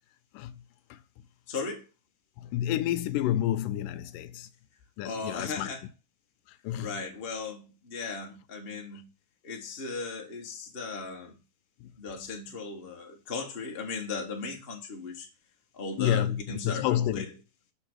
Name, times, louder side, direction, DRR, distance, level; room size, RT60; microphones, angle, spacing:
voice 1, 1.5-1.9 5.0-5.8 6.8-9.1 9.4-11.4 12.0-15.3 15.7-17.2, left 4 dB, 35° left, 0.9 m, -37 dB
voice 2, 2.4-4.5 5.0-5.7 6.6-6.9 11.8-11.9 16.0-17.3, left 12 dB, 80° left, 2.2 m, -29 dB
6.8 x 3.9 x 6.3 m
omnidirectional pair, 3.8 m